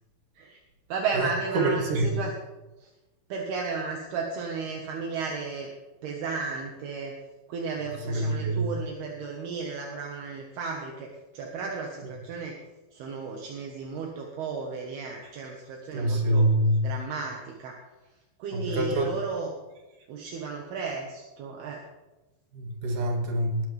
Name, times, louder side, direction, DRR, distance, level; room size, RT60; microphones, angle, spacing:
voice 1, 0.9-2.3 2.8-2.9 3.3-5.7 6.0-7.2 7.5-12.6 12.9-16.5 16.8-17.8 18.4-19.5 20.1-21.8, right 4 dB, 70° right, 0 dB, 3.3 m, -34 dB
voice 2, 1.5-2.1 8.0-8.7 15.9-16.8 18.5-19.1 22.5-23.6, right 1 dB, 55° right, 1 dB, 3.4 m, -25 dB
20.0 x 12.5 x 3.5 m, 1.1 s
omnidirectional pair, 5.0 m